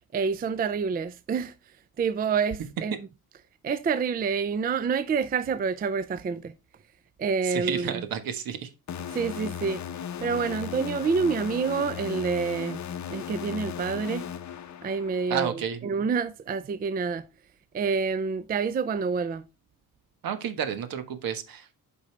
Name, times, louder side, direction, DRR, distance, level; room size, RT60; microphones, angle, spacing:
voice 1, 0.1-1.5 2.0-2.9 3.6-6.5 7.2-8.0 9.1-9.8 10.2-12.8 13.1-14.3 14.8-17.3 17.7-19.4, right 5 dB, 25° right, 0.4 m, -27 dB
voice 2, 7.4-8.7 15.3-15.9 20.2-21.7, right 8 dB, 65° right, 1.4 m, -31 dB
sound 1, 8.9-15.4, left 8 dB, 45° left, 0.8 m, -36 dB
8.3 x 5.4 x 3.2 m
cardioid pair, 140°, 38 cm